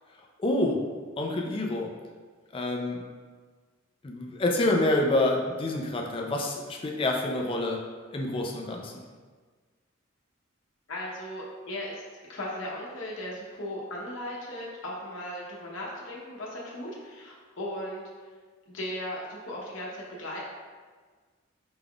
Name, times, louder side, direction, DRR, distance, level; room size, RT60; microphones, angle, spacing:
voice 1, 0.4-0.8 1.2-1.9 2.5-3.0 4.0-7.8 8.1-9.0, left 2 dB, 25° left, 0 dB, 0.4 m, -27 dB
voice 2, 10.9-12.0 12.3-18.1 18.7-20.4, left 1 dB, 70° left, -4 dB, 0.8 m, -37 dB
5.0 x 3.6 x 2.3 m, 1.5 s
head